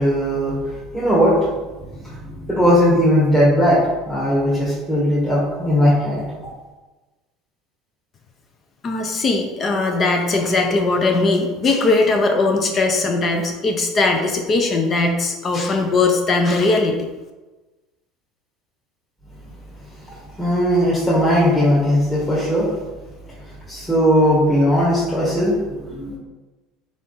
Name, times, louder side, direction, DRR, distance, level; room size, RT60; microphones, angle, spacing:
voice 1, 0.0-1.3 1.8-6.2 20.4-22.7 23.7-26.2, equal, 10° left, -9 dB, 1.4 m, -18 dB
voice 2, 8.8-17.0, left 3 dB, 35° left, 3 dB, 0.6 m, -19 dB
3.7 x 3.4 x 4.0 m, 1.2 s
supercardioid pair, 115°, 0 cm